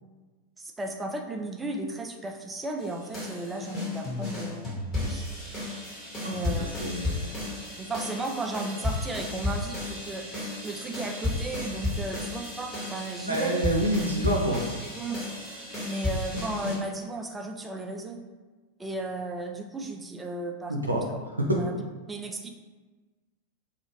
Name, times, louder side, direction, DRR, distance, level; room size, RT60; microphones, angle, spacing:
voice 1, 0.6-4.7 5.0-5.3 6.2-6.8 7.8-13.5 14.8-15.2 15.9-18.2 18.8-21.0 21.5-21.8 22.1-22.5, right 2 dB, 10° right, 3 dB, 0.3 m, -35 dB
sound 1, 2.8-16.8, left 2 dB, 20° left, 1.2 m, -33 dB
voice 2, 6.2-7.4 13.3-14.6 20.7-21.0, right 1 dB, 80° right, -1 dB, 0.4 m, -28 dB
2.5 x 2.4 x 3.0 m, 1.3 s
figure-of-eight pair, 90°, 0 cm